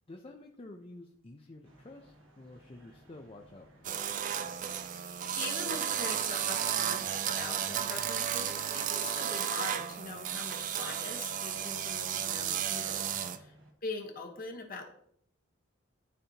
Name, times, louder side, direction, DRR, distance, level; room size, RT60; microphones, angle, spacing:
voice 1, 0.1-4.3 13.1-13.4, left 2 dB, 30° left, 2 dB, 0.5 m, -51 dB
sound 1, 1.6-13.7, right 1 dB, 90° right, 1.4 m, -58 dB
sound 2, 3.8-13.4, right 9 dB, 40° right, 0.4 m, -33 dB
voice 2, 4.9-13.5 13.8-14.9, left 3 dB, 45° left, 3 dB, 1.3 m, -43 dB
12.5 x 4.2 x 2.9 m, 0.66 s
head